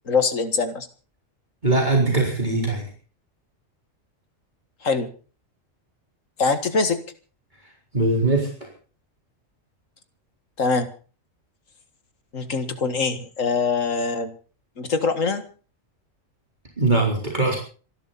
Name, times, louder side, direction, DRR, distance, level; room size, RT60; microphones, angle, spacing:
voice 1, 0.1-0.9 4.8-5.1 6.4-7.0 10.6-10.9 12.3-14.3 14.8-15.4, left 4 dB, 75° left, 9 dB, 2.2 m, -23 dB
voice 2, 1.6-2.9 7.9-8.5 16.8-17.6, right 2 dB, 35° right, -1 dB, 4.2 m, -21 dB
26.5 x 12.0 x 4.1 m, 0.39 s
omnidirectional pair, 1.4 m